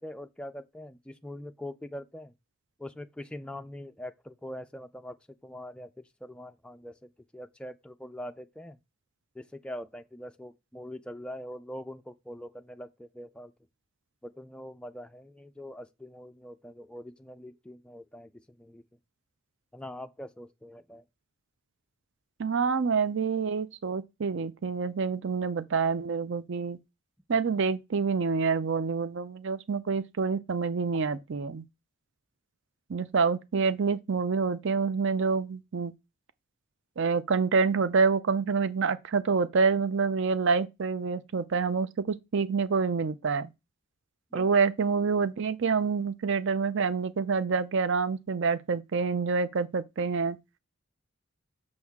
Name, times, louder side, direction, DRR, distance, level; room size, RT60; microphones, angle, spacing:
voice 1, 0.0-2.3 2.8-5.2 5.4-7.0 7.3-8.8 9.4-13.5 14.2-18.8 19.7-21.0 44.3-44.5, left 1 dB, 5° left, 0.3 m, -43 dB
voice 2, 22.4-26.8 27.3-31.6 32.9-35.9 37.0-43.5 44.3-50.4, right 5 dB, 55° right, 0.5 m, -27 dB
6.3 x 6.2 x 3.5 m
head